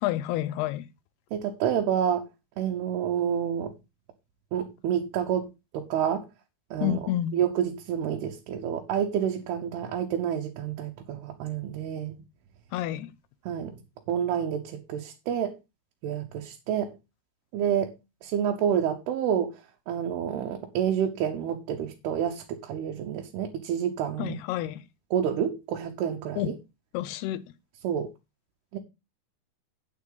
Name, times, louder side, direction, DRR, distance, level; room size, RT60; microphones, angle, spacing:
voice 1, 0.0-0.8 6.8-7.4 12.7-13.1 24.2-24.8 26.4-26.5 26.9-27.4, left 13 dB, 80° left, 2.6 m, -29 dB
voice 2, 1.3-2.3 2.6-3.7 4.5-6.2 6.7-7.0 7.3-12.2 13.5-13.8 14.1-15.6 16.0-16.9 17.5-17.9 18.2-19.6 19.9-24.4 25.1-26.6 27.8-28.1 28.7-28.8, right 9 dB, 75° right, 2.9 m, -28 dB
9.0 x 8.4 x 3.8 m
omnidirectional pair, 4.8 m